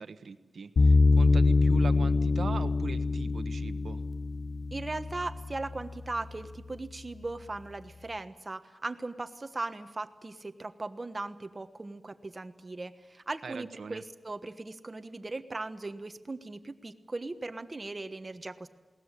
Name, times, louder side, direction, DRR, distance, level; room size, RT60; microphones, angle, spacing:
voice 1, 0.0-4.0 13.4-14.0, right 5 dB, 80° right, 11 dB, 1.2 m, -40 dB
sound 1, 0.8-5.9, left 3 dB, 85° left, 1.0 m, -25 dB
voice 2, 4.7-18.7, right 2 dB, 30° right, 10 dB, 1.3 m, -38 dB
21.5 x 18.5 x 9.9 m, 1.2 s
wide cardioid pair, 120°, 0 cm